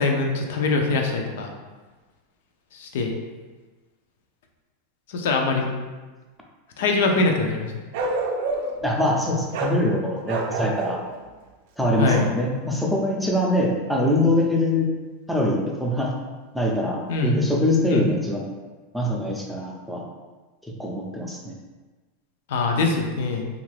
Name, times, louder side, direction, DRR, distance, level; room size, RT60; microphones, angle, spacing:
voice 1, 0.0-1.5 2.7-3.1 5.1-5.7 6.8-7.7 12.0-12.3 17.1-17.4 17.9-18.0 22.5-23.5, left 3 dB, 75° left, 3 dB, 0.5 m, -23 dB
Bark, 7.9-8.8 9.5-9.8 10.2-11.0 12.0-12.3, right 2 dB, 70° right, 0.4 m, -27 dB
voice 2, 8.8-11.0 11.8-14.9 15.3-16.1 16.5-18.5 18.9-20.0 20.8-21.5, left 1 dB, ahead, -2 dB, 0.4 m, -23 dB
2.7 x 2.5 x 3.2 m, 1.3 s
supercardioid pair, 145°, 0 cm